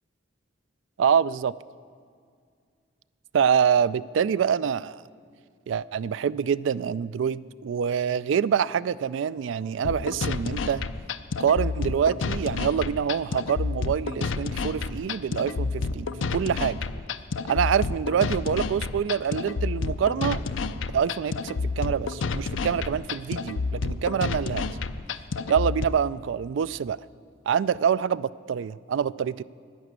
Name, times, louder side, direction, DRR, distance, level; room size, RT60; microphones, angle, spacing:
voice 1, 1.0-1.5 3.3-5.0 5.7-10.8 11.4-16.8 17.5-20.4 20.9-24.6 25.5-27.0 27.5-29.4, right 7 dB, 75° right, 18 dB, 0.3 m, -25 dB
sound 1, 9.8-25.8, left 4 dB, 80° left, 0.5 m, -30 dB
11.0 x 10.0 x 8.1 m, 2.2 s
head